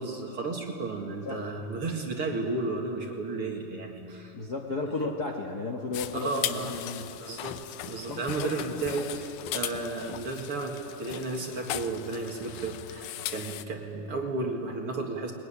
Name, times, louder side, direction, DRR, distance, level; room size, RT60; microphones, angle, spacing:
voice 1, 0.0-4.4 5.0-5.1 6.1-6.7 7.2-7.6 7.9-15.3, right 3 dB, 45° right, 2 dB, 2.3 m, -33 dB
voice 2, 4.3-7.1 8.1-8.6, left 3 dB, 60° left, 1 dB, 1.0 m, -34 dB
sound 1, 5.9-13.6, left 13 dB, 80° left, 2.5 m, -38 dB
21.0 x 21.0 x 10.0 m, 2.7 s
omnidirectional pair, 4.2 m